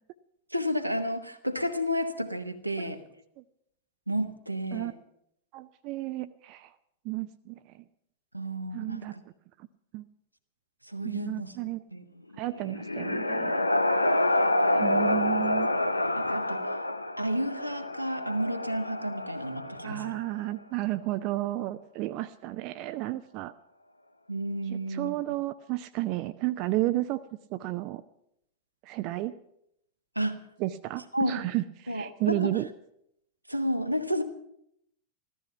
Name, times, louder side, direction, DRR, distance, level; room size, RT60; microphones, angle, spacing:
voice 1, 0.5-3.0 4.1-4.9 8.3-9.2 10.9-11.5 11.9-12.0 14.1-14.3 14.6-14.9 16.2-16.8 17.2-20.2 24.3-25.1 30.1-30.4 31.1-31.3 31.9-32.5 33.5-34.2, equal, 90° right, 6 dB, 1.2 m, -31 dB
voice 2, 5.5-6.7 7.0-7.8 8.7-9.1 9.9-10.0 11.0-11.8 12.4-13.6 14.7-15.7 19.8-23.5 24.7-27.2 27.5-28.0 28.8-29.3 30.6-32.7, right 17 dB, 40° right, 11 dB, 0.5 m, -32 dB
sound 1, 12.4-20.3, left 1 dB, 85° left, 0.6 m, -28 dB
14.5 x 13.5 x 5.8 m, 0.76 s
figure-of-eight pair, 90°, 0 cm